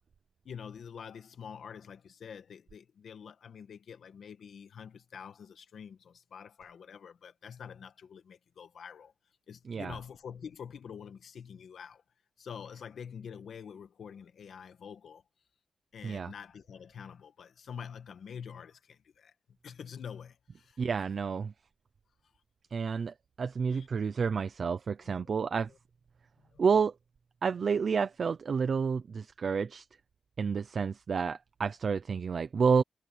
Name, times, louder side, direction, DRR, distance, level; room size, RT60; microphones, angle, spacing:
voice 1, 0.4-9.1 9.5-12.0 12.4-15.2 15.9-19.3 19.6-20.9 23.7-23.9 25.1-25.4 25.7-25.8 26.4-26.6, left 7 dB, 65° left, 1.6 m, -46 dB
voice 2, 20.8-21.5 22.7-25.7 26.6-26.9 27.4-29.9 30.4-32.8, right 6 dB, 45° right, 0.7 m, -30 dB
wide cardioid pair, 165°, 0 cm